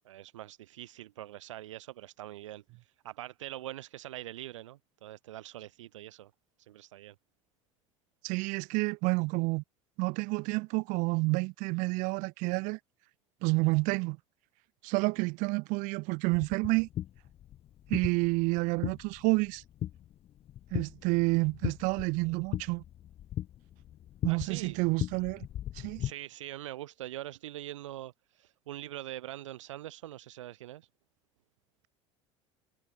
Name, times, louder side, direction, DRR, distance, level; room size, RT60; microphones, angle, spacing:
voice 1, 0.1-2.6 3.0-6.3 6.6-7.1 24.3-24.8 26.0-30.9, right 14 dB, 75° right, 2.1 m, -43 dB
voice 2, 8.2-9.6 10.0-12.8 13.4-14.2 14.8-16.9 17.9-19.6 20.7-22.8 24.2-25.5 25.7-26.0, right 27 dB, 55° right, 0.4 m, -29 dB
sound 1, 16.3-26.1, left 12 dB, 40° left, 0.7 m, -39 dB
figure-of-eight pair, 70°, 16 cm